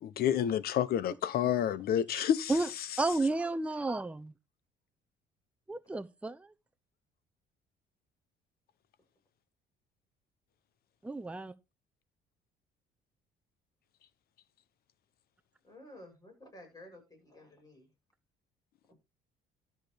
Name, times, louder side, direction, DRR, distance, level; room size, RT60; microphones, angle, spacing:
voice 1, 0.0-2.5, left 10 dB, 65° left, 1.1 m, -29 dB
voice 2, 3.0-4.3 5.7-6.5 11.0-11.5, right 2 dB, 5° right, 0.7 m, -32 dB
voice 3, 15.6-17.9 18.9-19.0, left 1 dB, 20° left, 7.9 m, -53 dB
13.0 x 6.2 x 5.1 m
cardioid pair, 110°, 17 cm